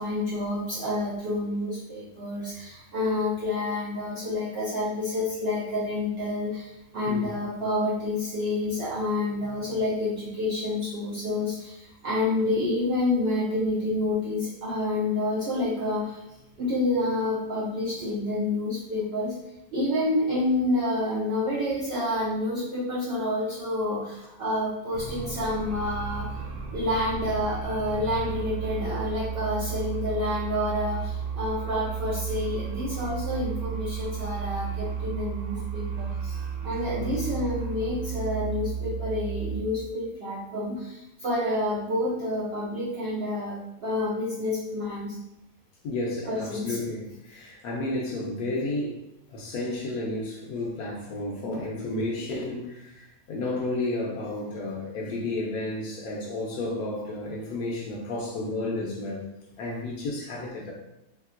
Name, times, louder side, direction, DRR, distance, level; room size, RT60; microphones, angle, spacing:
voice 1, 0.0-16.2 16.6-19.4 19.7-26.3 26.7-36.4 36.6-45.2 46.3-46.8, left 2 dB, 65° right, -6 dB, 0.6 m, -28 dB
sound 1, 24.9-39.6, right 7 dB, 85° right, 1.2 m, -33 dB
voice 2, 45.8-59.3 59.6-60.7, left 2 dB, 85° left, -3 dB, 1.1 m, -32 dB
3.2 x 2.8 x 2.4 m, 0.88 s
omnidirectional pair, 1.6 m